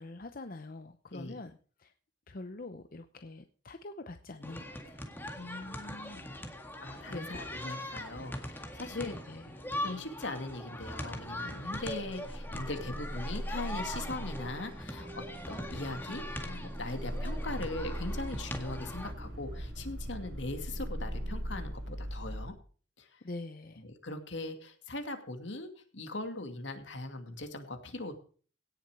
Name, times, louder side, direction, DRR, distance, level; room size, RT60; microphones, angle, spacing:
voice 1, 0.0-1.9 2.3-5.1 7.1-7.4 8.9-9.6 23.2-23.8, left 2 dB, 50° left, 8 dB, 0.8 m, -44 dB
sound 1, 4.4-19.1, left 1 dB, 10° left, 1.9 m, -41 dB
voice 2, 5.4-6.5 6.8-9.2 9.8-22.5 23.0-23.2 23.8-28.2, left 2 dB, 75° left, 6 dB, 2.4 m, -40 dB
sound 2, 11.7-21.6, equal, 25° right, 1.3 m, -42 dB
sound 3, 17.0-22.5, equal, 80° right, 3.5 m, -41 dB
17.5 x 7.2 x 4.7 m, 0.41 s
head